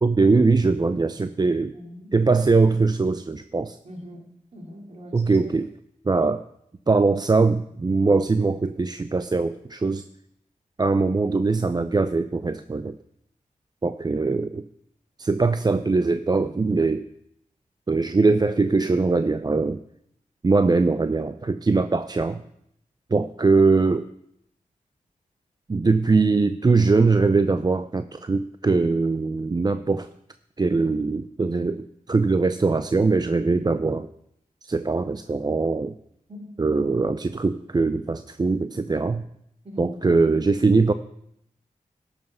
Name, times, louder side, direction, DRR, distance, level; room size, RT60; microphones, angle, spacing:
voice 1, 0.0-1.7 2.1-3.8 5.1-5.7 6.1-6.4 6.9-10.0 10.8-13.0 13.8-14.7 15.2-17.1 17.9-19.8 20.4-22.4 23.1-24.1 25.7-30.1 30.6-34.1 34.6-35.9 36.6-39.2 39.8-40.9, right 3 dB, 30° right, 11 dB, 0.4 m, -21 dB
voice 2, 1.7-2.1 3.8-5.5 36.3-36.5 39.6-40.1, equal, 45° right, 2 dB, 2.7 m, -42 dB
13.0 x 5.7 x 5.6 m, 0.75 s
cardioid pair, 45°, 15 cm